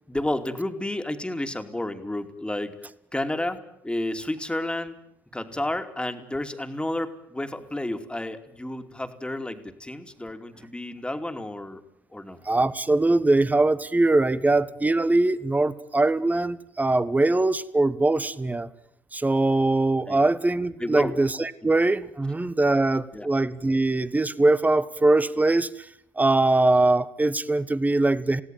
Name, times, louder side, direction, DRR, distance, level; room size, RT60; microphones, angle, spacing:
voice 1, 0.1-2.8 3.1-5.0 5.3-11.8 12.1-12.4 20.1-20.2 20.8-21.2 21.6-21.7 23.1-23.3, left 1 dB, 10° left, 7 dB, 2.9 m, -31 dB
voice 2, 12.4-18.7 19.1-25.7 26.2-28.4, right 2 dB, 15° right, 15 dB, 1.5 m, -22 dB
28.5 x 17.0 x 9.3 m, 0.76 s
hypercardioid pair, 55°, 11 cm